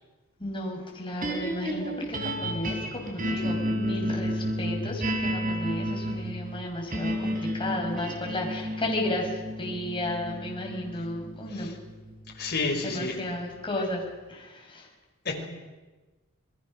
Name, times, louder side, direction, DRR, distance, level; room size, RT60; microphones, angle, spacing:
voice 1, 0.4-11.7 12.8-14.0 14.3-14.9, left 1 dB, 25° left, 0 dB, 5.7 m, -33 dB
sound 1, 1.2-13.5, equal, 40° right, 4.0 m, -32 dB
voice 2, 12.3-13.2 15.2-15.3, left 3 dB, 50° left, 1 dB, 5.1 m, -29 dB
27.5 x 21.5 x 6.5 m, 1.2 s
head